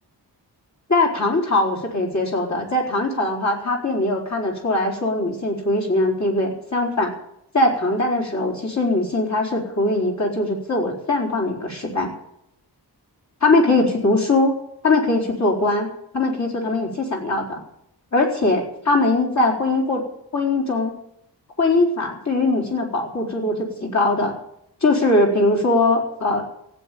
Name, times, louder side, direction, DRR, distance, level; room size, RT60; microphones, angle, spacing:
voice 1, 0.9-7.1 7.5-12.1 13.4-14.6 14.8-17.6 18.1-20.0 20.3-20.9 21.6-24.3 24.8-26.5, left 2 dB, 40° left, -1 dB, 4.4 m, -21 dB
15.5 x 9.3 x 8.6 m, 0.77 s
wide cardioid pair, 150°, 41 cm